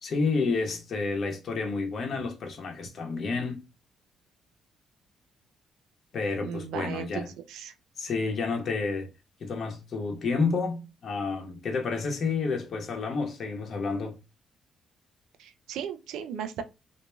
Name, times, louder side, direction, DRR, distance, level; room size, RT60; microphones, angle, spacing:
voice 1, 0.0-3.6 6.1-7.3 8.0-9.1 9.4-14.2, left 4 dB, 55° left, 0.9 m, -30 dB
voice 2, 6.4-7.2 7.5-7.7 15.4-16.6, right 8 dB, 85° right, 0.4 m, -36 dB
2.9 x 2.6 x 2.2 m
cardioid pair, 90°, 0 cm